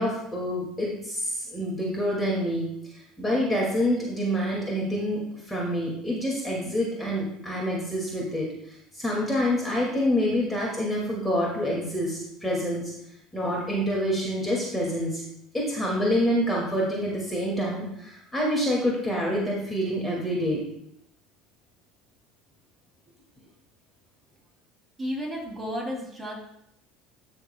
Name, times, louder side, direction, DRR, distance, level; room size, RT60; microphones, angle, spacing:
voice 1, 0.0-12.9 13.3-15.2 15.5-20.6, equal, 10° left, -4 dB, 2.3 m, -27 dB
voice 2, 25.0-26.3, equal, 15° right, -2 dB, 2.9 m, -32 dB
13.0 x 6.5 x 2.3 m, 0.77 s
supercardioid pair, 95°, 0 cm